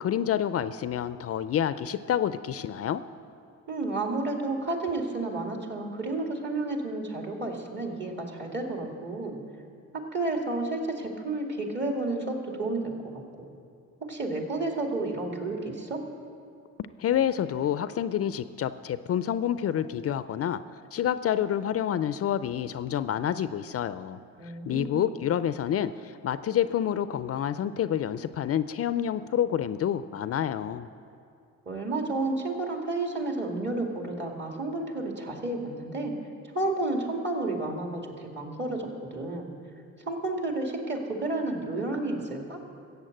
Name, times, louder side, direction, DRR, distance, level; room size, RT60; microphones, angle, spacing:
voice 1, 0.0-3.0 17.0-20.6 20.9-30.9, left 10 dB, 50° left, 13 dB, 0.5 m, -28 dB
voice 2, 3.7-9.4 9.9-13.2 14.0-16.0 24.4-25.1 31.7-36.1 36.5-39.5 40.1-42.6, right 2 dB, 35° right, 2 dB, 2.3 m, -31 dB
14.0 x 8.2 x 7.8 m, 2.5 s
cardioid pair, 90°, 30 cm